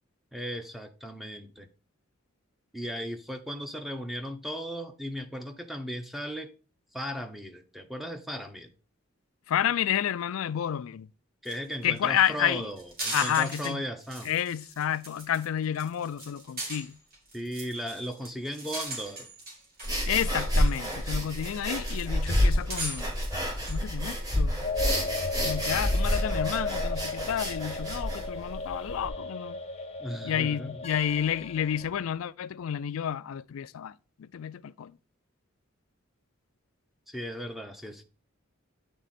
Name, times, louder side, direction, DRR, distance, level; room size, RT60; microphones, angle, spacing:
voice 1, 0.3-1.7 2.7-6.5 6.9-8.7 11.4-14.3 17.3-19.3 30.0-30.8 37.1-38.0, equal, ahead, 0.7 m, -36 dB
voice 2, 9.5-11.1 11.8-12.7 13.1-13.8 14.2-17.0 20.1-23.2 23.7-24.7 25.4-29.6 30.2-35.0, left 9 dB, 80° left, 0.4 m, -30 dB
sound 1, 11.4-11.6 11.8-12.0 12.3-13.7 14.0-15.4 15.7-20.1 20.5-23.8, right 2 dB, 45° right, 2.7 m, -39 dB
sound 2, 19.8-29.1, equal, 20° right, 1.9 m, -29 dB
sound 3, 24.6-31.8, left 3 dB, 30° left, 0.8 m, -35 dB
9.1 x 3.6 x 4.1 m
head